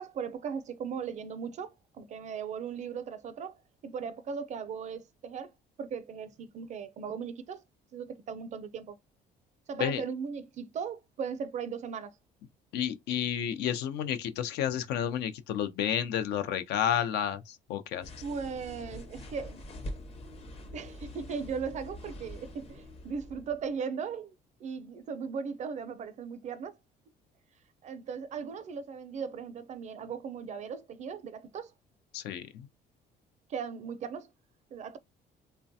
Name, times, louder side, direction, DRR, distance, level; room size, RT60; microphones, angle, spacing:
voice 1, 0.0-3.6 3.8-5.5 5.8-7.6 7.9-9.0 9.7-12.1 18.2-19.6 20.7-24.4 24.6-26.8 27.8-31.7 33.5-34.3 34.7-35.0, right 6 dB, 45° right, 0.4 m, -38 dB
voice 2, 12.7-18.1 32.1-32.7, left 9 dB, 80° left, 0.5 m, -31 dB
sound 1, 18.0-23.8, left 1 dB, 35° left, 0.7 m, -44 dB
3.2 x 2.2 x 2.6 m
cardioid pair, 110°, 17 cm